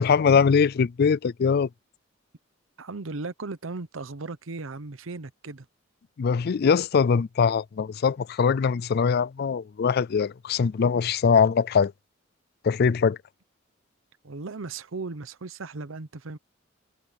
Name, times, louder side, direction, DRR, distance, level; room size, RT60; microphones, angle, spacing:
voice 1, 0.0-1.7 6.2-11.9 12.6-13.2, left 6 dB, 50° left, 0.4 m, -22 dB
voice 2, 2.8-5.7 14.2-16.4, right 3 dB, 85° right, 0.9 m, -36 dB
head